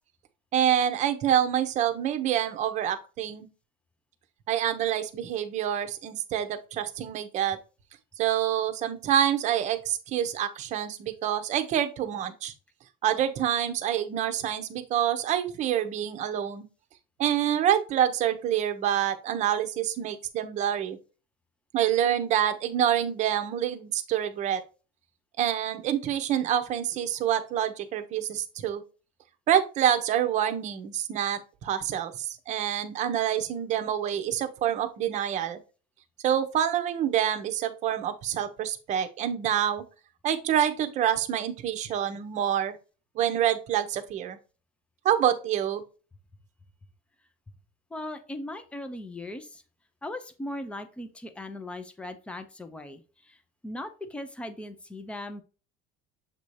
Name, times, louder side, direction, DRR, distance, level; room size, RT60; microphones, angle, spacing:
voice 1, 0.5-3.5 4.5-7.6 8.2-12.5 13.0-16.7 17.2-21.0 21.7-24.6 25.4-28.8 29.5-35.6 36.2-39.8 40.2-42.7 43.1-44.4 45.0-45.8, right 10 dB, 35° right, 8 dB, 0.7 m, -27 dB
voice 2, 47.9-49.4 50.0-53.0 53.6-55.4, left 1 dB, 5° left, 10 dB, 0.5 m, -38 dB
7.3 x 2.8 x 4.6 m, 0.34 s
cardioid pair, 170°, 21 cm